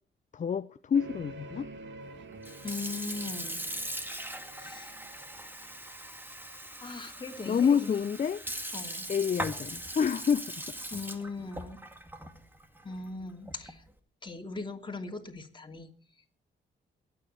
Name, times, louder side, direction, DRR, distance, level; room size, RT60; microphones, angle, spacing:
voice 1, 0.3-1.7 7.5-8.4 9.1-10.4, left 7 dB, 40° left, 0.7 m, -27 dB
sound 1, 0.9-6.6, right 3 dB, 75° right, 2.4 m, -48 dB
Sink (filling or washing) / Fill (with liquid), 2.3-13.9, right 1 dB, 10° right, 2.2 m, -40 dB
voice 2, 2.6-3.6 4.6-4.9 6.8-8.0 8.7-9.0 10.9-11.8 12.8-13.8 14.2-15.9, left 3 dB, 25° left, 3.0 m, -39 dB
22.0 x 9.5 x 4.5 m
cardioid pair, 80°, 19 cm